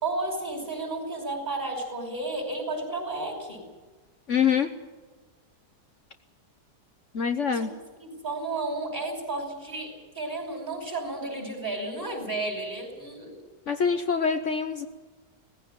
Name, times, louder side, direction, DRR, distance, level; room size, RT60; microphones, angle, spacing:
voice 1, 0.0-3.6 7.5-7.7 8.0-13.4, right 2 dB, 25° right, 1 dB, 5.7 m, -32 dB
voice 2, 4.3-4.7 7.1-7.7 13.7-14.9, left 6 dB, 50° left, 8 dB, 1.2 m, -25 dB
19.0 x 15.5 x 9.3 m, 1.3 s
omnidirectional pair, 1.8 m